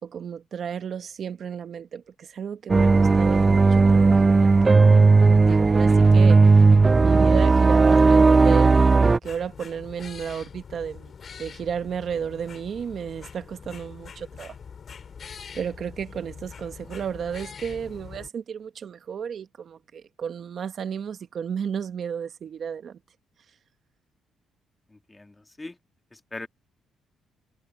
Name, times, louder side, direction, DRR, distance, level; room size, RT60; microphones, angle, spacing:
voice 1, 0.0-4.3 4.6-4.8 5.3-6.7 7.0-11.1 11.4-14.6 15.5-23.0, right 7 dB, 55° right, 1.1 m, -33 dB
sound 1, 2.7-9.2, right 3 dB, 25° right, 0.3 m, -16 dB
sound 2, 9.2-18.3, left 6 dB, 50° left, 4.6 m, -43 dB
voice 2, 24.9-25.8 26.1-26.5, left 2 dB, 15° left, 2.0 m, -40 dB
cardioid pair, 90°, 0 cm